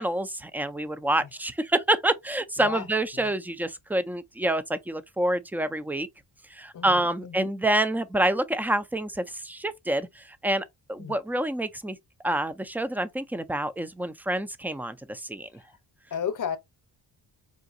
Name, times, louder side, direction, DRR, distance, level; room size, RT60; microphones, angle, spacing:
voice 1, 0.0-6.1 6.5-12.0 12.2-15.5, right 1 dB, 5° right, 0.3 m, -27 dB
voice 2, 6.7-7.5 11.0-11.2 16.1-16.6, left 8 dB, 45° left, 0.8 m, -33 dB
4.8 x 2.6 x 2.5 m
cardioid pair, 125°, 43 cm